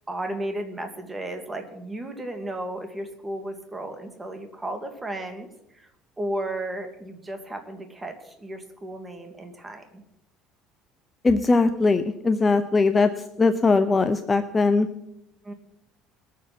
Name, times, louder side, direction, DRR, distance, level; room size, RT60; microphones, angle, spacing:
voice 1, 0.1-5.9 6.2-10.0 15.4-15.5, right 1 dB, 15° right, 6 dB, 2.0 m, -34 dB
voice 2, 11.2-13.1 13.4-14.9, left 3 dB, 20° left, 8 dB, 0.7 m, -20 dB
21.0 x 7.4 x 5.9 m, 0.84 s
cardioid pair, 130°, 0 cm